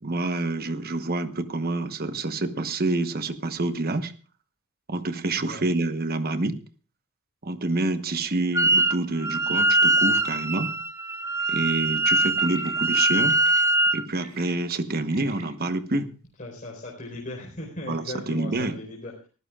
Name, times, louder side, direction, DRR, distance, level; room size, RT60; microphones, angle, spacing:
voice 1, 0.0-4.1 4.9-6.6 7.4-10.7 11.5-13.4 13.9-16.1 17.9-18.8, right 2 dB, 45° right, 10 dB, 1.1 m, -27 dB
Wind instrument woodwind instrument, 8.5-9.0 9.2-14.0, right 2 dB, 15° right, 0.6 m, -22 dB
Bird, 11.4-11.7 12.4-12.7 13.3-13.6 14.1-15.4, right 6 dB, 90° right, 6.7 m, -47 dB
voice 2, 16.4-19.3, left 1 dB, 40° left, -1 dB, 4.3 m, -38 dB
23.5 x 15.0 x 2.4 m, 0.35 s
head